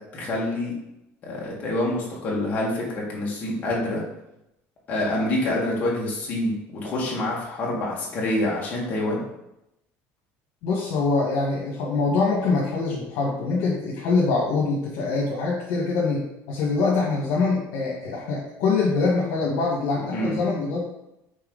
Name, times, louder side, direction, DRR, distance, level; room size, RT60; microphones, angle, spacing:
voice 1, 0.1-0.7 1.2-4.0 4.9-9.2 20.1-20.4, left 1 dB, 30° left, -4 dB, 1.8 m, -26 dB
voice 2, 10.6-20.9, left 3 dB, 65° left, -5 dB, 1.6 m, -24 dB
5.7 x 4.6 x 4.0 m, 0.87 s
cardioid pair, 175°, 6 cm